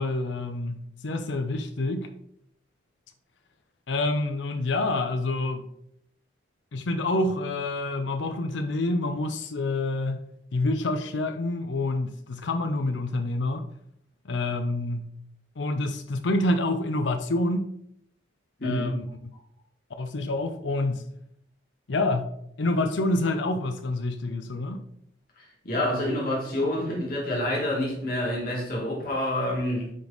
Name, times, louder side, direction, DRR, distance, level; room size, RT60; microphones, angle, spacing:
voice 1, 0.0-2.1 3.9-5.7 6.7-10.2 10.5-13.7 14.3-15.1 15.6-17.7 18.6-19.1 20.0-21.0 21.9-22.3 22.6-24.8, left 2 dB, 80° left, 0.6 m, -27 dB
voice 2, 18.6-18.9 25.4-29.9, left 1 dB, 50° left, 2.0 m, -28 dB
9.1 x 3.5 x 4.0 m
head